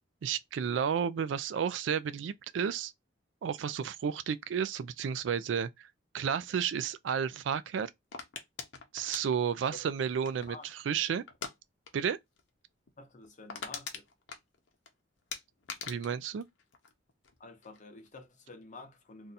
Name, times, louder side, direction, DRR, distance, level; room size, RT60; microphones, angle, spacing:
voice 1, 0.2-2.9 3.4-5.9 6.1-7.9 8.9-11.2 11.9-12.2 15.9-16.5, right 7 dB, 80° right, 0.3 m, -32 dB
sound 1, 8.1-10.7 11.3-11.6 11.8-12.1 12.4-12.5 12.9-13.0 13.2-14.9 15.3-17.3 17.6-18.1, left 6 dB, 85° left, 0.7 m, -42 dB
voice 2, 10.3-10.7 11.1-11.2 13.0-14.1 17.4-19.3, left 3 dB, 45° left, 0.8 m, -50 dB
2.7 x 2.3 x 3.9 m
head